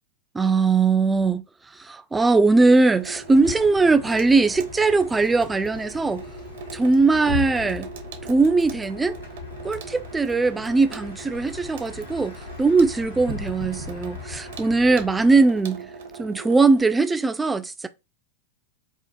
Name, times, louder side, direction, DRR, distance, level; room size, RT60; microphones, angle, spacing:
voice 1, 0.3-1.4 1.8-6.2 6.7-7.9 8.3-9.2 9.6-15.9 16.2-17.9, right 3 dB, 10° right, 0.3 m, -20 dB
Water tap faucet / Sink (filling or washing), 2.6-16.8, right 5 dB, 55° right, 0.6 m, -42 dB
Bus, 3.2-15.6, left 5 dB, 75° left, 1.2 m, -38 dB
4.4 x 2.4 x 2.5 m
figure-of-eight pair, 90°, 0 cm